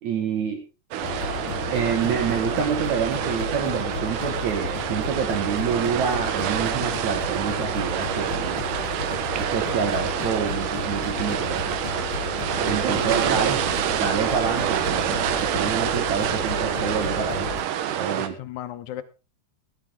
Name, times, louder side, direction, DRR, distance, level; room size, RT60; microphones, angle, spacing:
voice 1, 0.0-0.6 1.7-8.6 9.4-11.7 12.6-13.6 13.9-17.5 18.0-18.4, right 7 dB, 70° right, 4 dB, 2.9 m, -27 dB
sound 1, 0.9-18.3, right 10 dB, 90° right, 2.6 m, -27 dB
sound 2, 1.0-17.6, left 6 dB, 65° left, 2.2 m, -33 dB
voice 2, 12.6-13.4 18.2-19.0, left 13 dB, 80° left, 11 dB, 2.2 m, -36 dB
13.5 x 12.5 x 3.6 m, 0.30 s
omnidirectional pair, 3.5 m